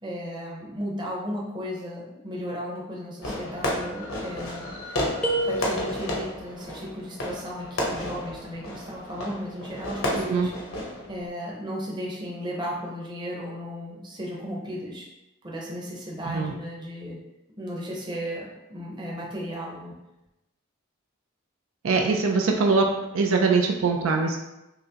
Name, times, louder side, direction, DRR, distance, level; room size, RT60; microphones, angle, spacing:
voice 1, 0.0-5.1 5.4-10.7 11.0-15.1 15.4-17.2 17.6-19.9, equal, 20° right, -4 dB, 0.8 m, -35 dB
Fireworks, 3.2-11.3, left 1 dB, 80° left, 0.9 m, -32 dB
sound 1, 5.2-6.4, right 1 dB, 5° left, 0.3 m, -28 dB
voice 2, 10.1-10.5 16.2-16.5 21.8-22.9 23.1-24.4, right 4 dB, 75° right, 2 dB, 0.4 m, -22 dB
5.8 x 2.1 x 2.8 m, 0.93 s
head